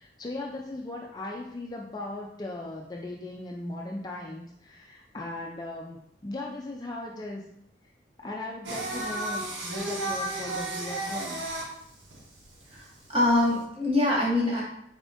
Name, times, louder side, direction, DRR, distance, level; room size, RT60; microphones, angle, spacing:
voice 1, 0.0-7.4 8.2-11.4, left 2 dB, 20° left, -1 dB, 0.3 m, -38 dB
Singing, 8.6-13.6, right 1 dB, 70° right, 0.8 m, -33 dB
voice 2, 13.1-14.6, left 1 dB, 30° right, -4 dB, 1.0 m, -24 dB
4.2 x 3.5 x 2.6 m, 0.72 s
head